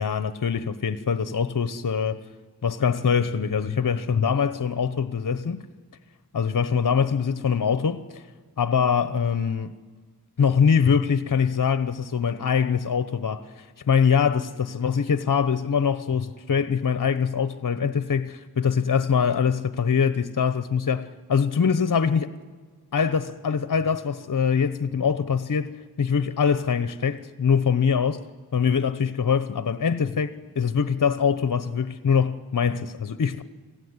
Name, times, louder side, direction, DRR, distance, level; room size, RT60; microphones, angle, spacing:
voice 1, 0.0-2.2 2.6-5.6 6.3-8.3 8.6-9.8 10.4-22.3 22.9-25.7 26.0-28.2 28.5-33.4, left 6 dB, 55° left, 1.1 m, -23 dB
29.5 x 20.0 x 9.8 m
cardioid pair, 60°, 38 cm